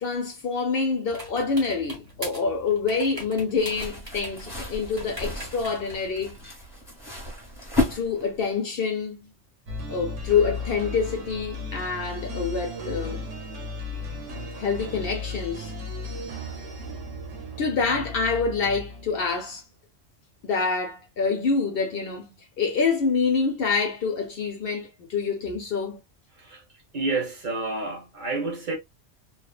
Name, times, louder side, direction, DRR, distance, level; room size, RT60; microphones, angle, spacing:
voice 1, 0.0-6.4 7.9-9.3 9.9-13.2 14.6-15.7 17.6-19.6 20.4-26.0, left 5 dB, 60° left, 0.7 m, -26 dB
sound 1, 1.1-6.5, equal, 20° right, 0.9 m, -42 dB
sound 2, 3.6-8.5, left 2 dB, 20° left, 0.9 m, -32 dB
sound 3, 9.7-19.5, left 2 dB, 85° right, 1.1 m, -35 dB
voice 2, 26.9-28.7, right 3 dB, 45° right, 0.8 m, -29 dB
2.7 x 2.1 x 2.3 m
omnidirectional pair, 1.2 m